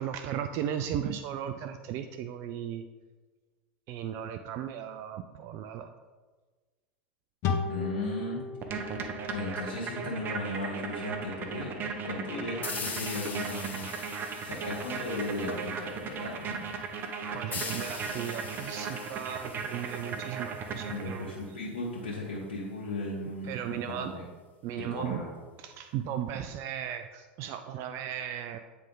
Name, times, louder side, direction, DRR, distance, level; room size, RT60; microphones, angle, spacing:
voice 1, 0.0-2.8 3.9-5.9 17.3-21.3 23.5-24.1 24.6-25.2 25.6-28.6, right 9 dB, 55° right, 8 dB, 0.4 m, -36 dB
sound 1, 7.4-10.8, left 5 dB, 50° left, 0.9 m, -36 dB
voice 2, 7.7-8.4 8.7-13.9 14.4-16.6 20.9-24.2 24.8-25.3, left 2 dB, 85° left, -5 dB, 1.2 m, -36 dB
sound 2, 8.6-21.4, right 5 dB, 35° right, 0.8 m, -37 dB
sound 3, 12.6-16.0 17.5-21.0, left 5 dB, 30° left, 1.2 m, -42 dB
8.8 x 3.4 x 3.8 m, 1.3 s
hypercardioid pair, 95°, 6 cm